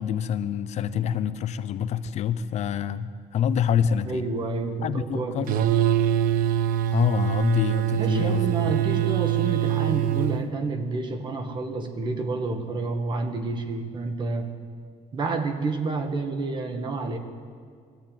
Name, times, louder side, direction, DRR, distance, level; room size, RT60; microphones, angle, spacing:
voice 1, 0.0-4.3 4.8-5.5 6.9-8.4, left 8 dB, 50° left, 13 dB, 0.6 m, -26 dB
voice 2, 4.1-5.7 8.0-14.5 15.1-17.2, right 3 dB, 30° right, 6 dB, 1.8 m, -29 dB
sound 1, 5.5-10.4, right 12 dB, 70° right, 0.9 m, -24 dB
21.5 x 13.5 x 9.0 m, 2.1 s
cardioid pair, 175°, 15 cm